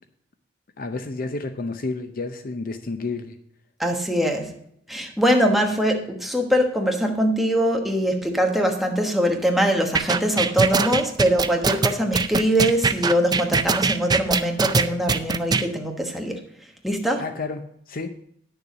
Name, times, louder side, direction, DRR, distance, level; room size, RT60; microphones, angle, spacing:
voice 1, 0.8-3.4 17.2-18.1, left 3 dB, 50° left, 8 dB, 0.6 m, -30 dB
voice 2, 3.8-4.5 4.9-16.4 16.8-17.2, equal, ahead, 2 dB, 1.2 m, -22 dB
sound 1, 9.9-15.6, right 4 dB, 20° right, 0.4 m, -21 dB
10.0 x 6.8 x 5.0 m, 0.71 s
head